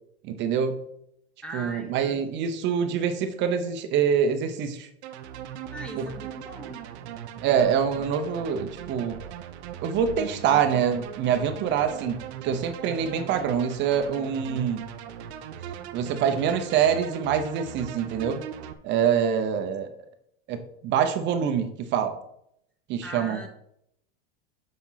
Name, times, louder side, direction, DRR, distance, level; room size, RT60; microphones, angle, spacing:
voice 1, 0.2-0.8 1.5-4.9 6.0-6.1 7.4-9.2 9.8-14.9 15.9-18.4 18.8-19.9 20.5-22.2 22.9-23.4, right 7 dB, 35° right, 8 dB, 0.9 m, -25 dB
voice 2, 1.4-2.6 5.7-6.9 23.0-23.5, right 1 dB, 5° left, 3 dB, 1.0 m, -40 dB
sound 1, 5.0-18.7, right 9 dB, 85° right, 1.0 m, -39 dB
7.3 x 5.4 x 5.7 m, 0.74 s
supercardioid pair, 160°, 32 cm